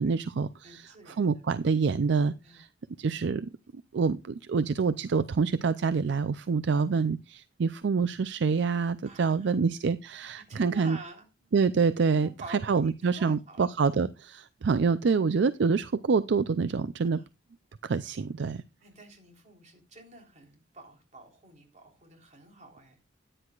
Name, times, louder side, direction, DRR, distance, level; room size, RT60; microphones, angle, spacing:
voice 1, 0.0-2.7 3.0-11.0 11.5-17.2 17.8-18.6, right 5 dB, 65° right, 14 dB, 0.4 m, -27 dB
voice 2, 0.6-1.3 2.4-2.6 9.0-9.6 10.5-11.5 12.1-13.9 17.0-17.2 18.8-23.0, right 2 dB, 40° right, 2 dB, 3.6 m, -48 dB
14.0 x 9.9 x 2.4 m, 0.26 s
head